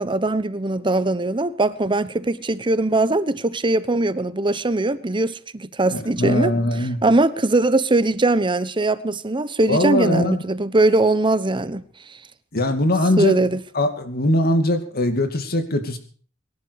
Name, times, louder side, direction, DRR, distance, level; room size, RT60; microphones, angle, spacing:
voice 1, 0.0-6.5 7.0-11.8 13.2-13.6, right 2 dB, 25° right, 0.9 m, -20 dB
voice 2, 5.9-7.0 9.7-10.4 12.5-13.3 13.7-16.0, left 1 dB, 50° left, 2.6 m, -21 dB
23.0 x 11.5 x 4.8 m
head